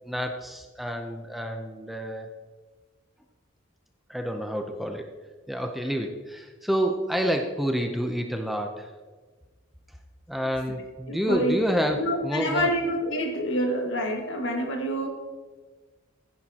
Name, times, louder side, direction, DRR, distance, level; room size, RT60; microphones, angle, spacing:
voice 1, 0.0-2.3 4.1-5.1 5.5-8.9 10.3-12.7, equal, ahead, 3 dB, 0.6 m, -28 dB
voice 2, 11.1-11.6 12.0-15.1, equal, 60° left, 2 dB, 1.8 m, -27 dB
15.5 x 10.5 x 2.9 m, 1.3 s
head